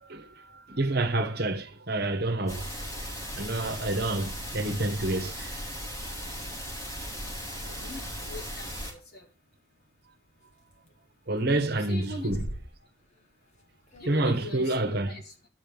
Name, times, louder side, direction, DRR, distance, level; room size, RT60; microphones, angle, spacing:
voice 1, 0.1-2.7 3.3-5.6 11.3-12.4 14.0-15.2, right 2 dB, 55° right, 1.4 m, -28 dB
sound 1, 2.5-8.9, equal, 20° left, 4.2 m, -37 dB
voice 2, 7.6-8.0 8.3-9.3 11.7-12.4 14.0-15.3, left 1 dB, 55° left, 3.1 m, -41 dB
sound 2, 8.1-8.2 8.9-9.0 10.5-11.0 11.3-11.7 12.0-13.3 13.6-13.7 13.9-14.1, equal, 35° left, 2.5 m, -40 dB
11.5 x 5.8 x 7.1 m
head